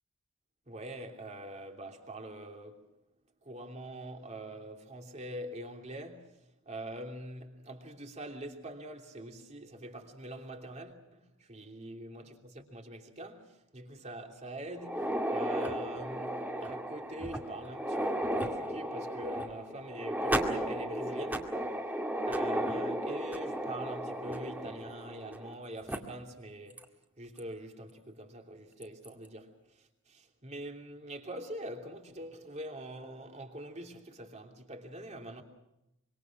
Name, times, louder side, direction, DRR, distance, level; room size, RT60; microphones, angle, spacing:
voice 1, 0.7-2.9 3.4-6.4 6.6-21.6 22.2-26.9 27.2-35.4, right 1 dB, 30° right, 3.1 m, -44 dB
sound 1, 14.8-25.5 25.9-26.0 26.8-26.9 27.4-27.5 28.8-29.1, right 1 dB, 10° right, 2.2 m, -34 dB
26.0 x 25.0 x 6.1 m
head